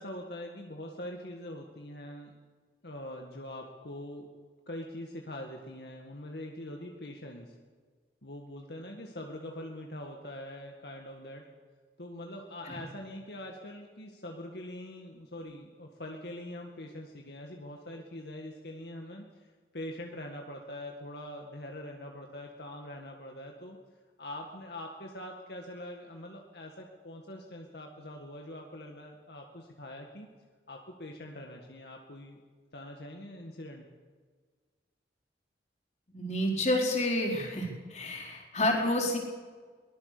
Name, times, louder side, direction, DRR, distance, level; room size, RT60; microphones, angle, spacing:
voice 1, 0.0-2.3 2.8-4.3 4.7-7.5 8.2-11.4 12.0-19.5 19.7-23.8 24.2-30.3 30.7-32.4 32.7-33.8, left 1 dB, 70° left, 1 dB, 2.1 m, -43 dB
voice 2, 36.1-39.2, left 1 dB, 40° left, -1 dB, 4.6 m, -29 dB
23.0 x 20.0 x 6.9 m, 1.5 s
head